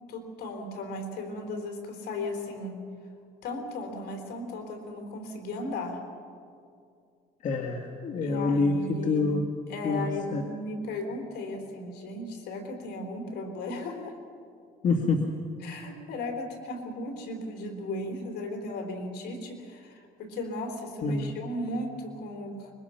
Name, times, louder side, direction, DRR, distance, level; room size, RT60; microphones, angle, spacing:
voice 1, 0.1-2.8 3.4-6.0 8.2-9.4 9.7-14.1 15.6-22.7, left 1 dB, 75° left, 4 dB, 3.9 m, -36 dB
voice 2, 7.4-9.4 9.8-10.4 14.8-15.2 21.0-21.3, left 3 dB, 45° left, 1 dB, 1.9 m, -27 dB
24.0 x 22.5 x 5.9 m, 2.4 s
cardioid pair, 110°, 17 cm